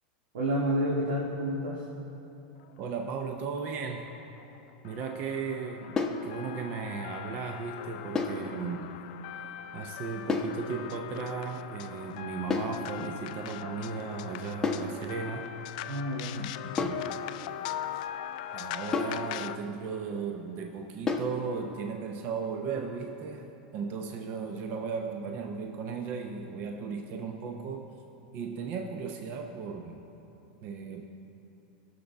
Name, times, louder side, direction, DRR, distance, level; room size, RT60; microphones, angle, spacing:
voice 1, 0.3-1.8 13.0-13.1 15.9-16.3, equal, 80° right, -7 dB, 1.8 m, -29 dB
voice 2, 2.8-4.2 4.8-9.0 9.7-15.5 16.3-17.1 18.5-27.9 28.3-30.0 30.6-31.0, right 5 dB, 40° right, 3 dB, 0.6 m, -36 dB
sound 1, 3.0-3.1 3.4-3.6 3.9-19.6, left 12 dB, 60° left, 0.3 m, -41 dB
sound 2, 6.0-6.3 8.2-8.5 10.3-10.6 12.5-12.8 14.6-14.9 16.8-17.1 18.9-19.3 21.1-21.4, left 4 dB, 15° left, 0.7 m, -30 dB
17.0 x 6.6 x 3.5 m, 2.9 s
supercardioid pair, 135°, 5 cm